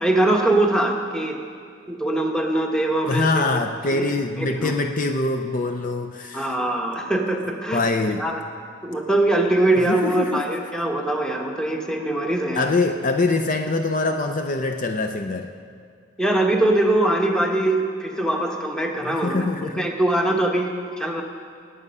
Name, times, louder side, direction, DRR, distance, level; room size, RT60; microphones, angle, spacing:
voice 1, 0.0-1.4 1.9-3.6 3.9-4.1 4.4-4.7 6.3-7.8 8.2-8.4 8.8-12.7 16.2-21.2, right 1 dB, 5° left, 2 dB, 1.1 m, -22 dB
voice 2, 3.1-6.6 7.7-8.3 9.9-10.4 12.5-15.5 19.0-19.8, left 3 dB, 45° left, 6 dB, 0.5 m, -24 dB
18.0 x 8.7 x 5.5 m, 2.3 s
head